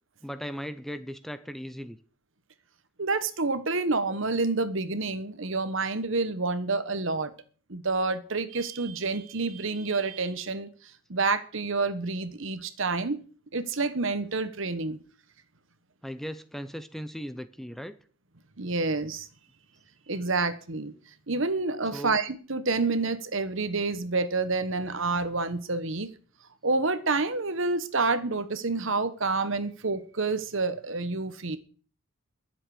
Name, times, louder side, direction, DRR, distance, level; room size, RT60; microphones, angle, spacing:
voice 1, 0.2-2.0 16.0-17.9 21.9-22.2, equal, ahead, 11 dB, 0.6 m, -37 dB
voice 2, 3.0-7.3 7.7-10.7 11.1-13.2 13.5-15.0 18.6-19.3 20.1-20.9 21.3-26.1 26.6-31.6, right 3 dB, 60° right, 12 dB, 1.2 m, -28 dB
22.0 x 7.5 x 4.9 m, 0.42 s
head